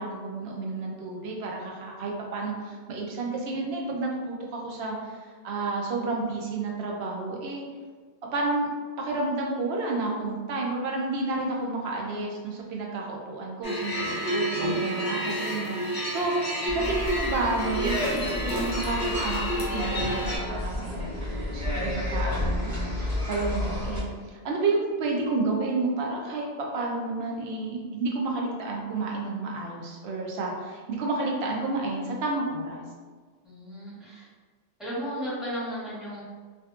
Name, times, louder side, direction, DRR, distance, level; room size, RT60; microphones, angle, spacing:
voice 1, 0.0-5.2 5.4-7.6 8.3-8.7 9.0-21.1 21.5-32.8, right 3 dB, 70° right, -1 dB, 0.8 m, -30 dB
sound 1, 13.6-20.4, equal, 30° left, 0.4 m, -30 dB
sound 2, 16.7-24.0, left 1 dB, 20° right, 0.7 m, -31 dB
voice 2, 33.4-34.2 34.8-36.2, equal, ahead, -10 dB, 1.0 m, -34 dB
2.6 x 2.4 x 2.3 m, 1.5 s
omnidirectional pair, 1.2 m